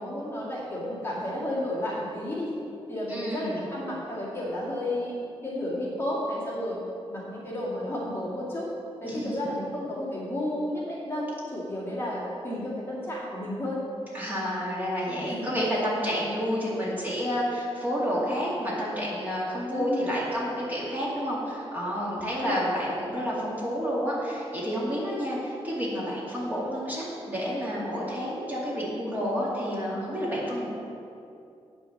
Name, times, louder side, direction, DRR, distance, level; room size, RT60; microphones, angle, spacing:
voice 1, 0.0-2.6 2.9-6.8 7.1-8.7 9.0-13.8 15.2-15.5 19.7-20.1 22.1-22.6, left 1 dB, 20° left, -7 dB, 2.0 m, -32 dB
voice 2, 3.1-3.7 9.0-9.4 14.1-30.7, equal, 15° right, -7 dB, 2.2 m, -30 dB
8.9 x 6.1 x 6.4 m, 2.6 s
wide cardioid pair, 170°, 11 cm